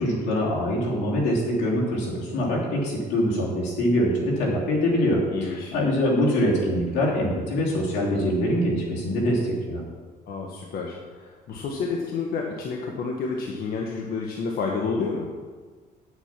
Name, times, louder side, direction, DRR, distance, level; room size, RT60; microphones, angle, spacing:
voice 1, 0.0-9.8, equal, 90° left, -4 dB, 3.3 m, -24 dB
voice 2, 5.3-5.7 10.3-15.3, left 4 dB, 65° left, 0 dB, 1.3 m, -30 dB
8.9 x 8.0 x 6.0 m, 1.4 s
cardioid pair, 110°, 17 cm